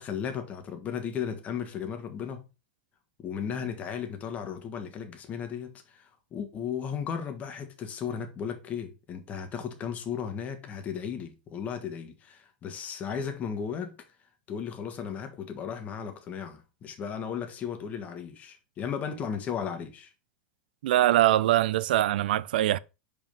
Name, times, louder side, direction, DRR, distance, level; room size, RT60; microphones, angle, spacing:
voice 1, 0.0-2.4 3.2-14.0 14.5-20.1, left 7 dB, 30° left, 1.6 m, -35 dB
voice 2, 20.8-22.8, right 14 dB, 70° right, 0.5 m, -23 dB
5.4 x 5.0 x 5.2 m
hypercardioid pair, 125°, 5 cm